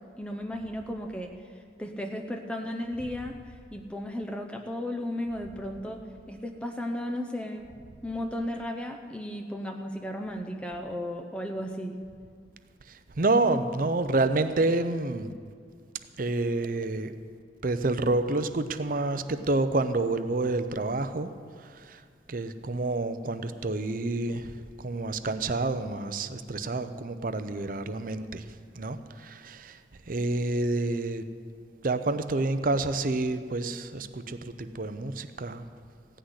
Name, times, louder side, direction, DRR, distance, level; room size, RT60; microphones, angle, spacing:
voice 1, 0.2-1.3 1.8-3.4 3.7-7.7 8.0-12.0, left 1 dB, 5° left, 2 dB, 0.6 m, -34 dB
voice 2, 12.9-15.3 16.2-17.1 17.6-21.3 21.6-22.0 22.3-28.5 28.7-29.8 30.1-31.3 31.8-35.6, right 2 dB, 50° right, 10 dB, 0.6 m, -28 dB
16.0 x 6.4 x 9.7 m, 2.1 s
head